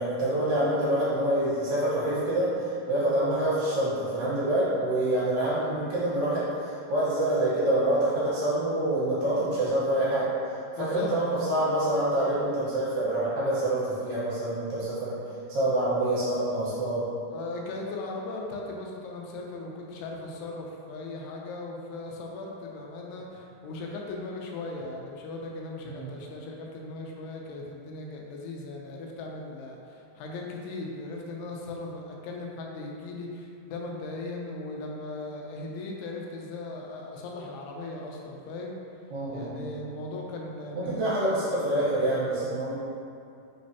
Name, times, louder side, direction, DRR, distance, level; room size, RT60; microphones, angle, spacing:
voice 1, 0.0-2.5 2.9-6.5 6.9-10.3 10.8-15.2 15.5-17.0 25.8-26.1 39.1-39.7 40.8-42.7, right 1 dB, 70° right, -10 dB, 2.5 m, -26 dB
voice 2, 10.8-11.1 17.3-38.8 39.3-41.2, left 2 dB, 90° left, -1 dB, 2.7 m, -38 dB
6.0 x 3.1 x 2.7 m, 2.5 s
omnidirectional pair, 4.6 m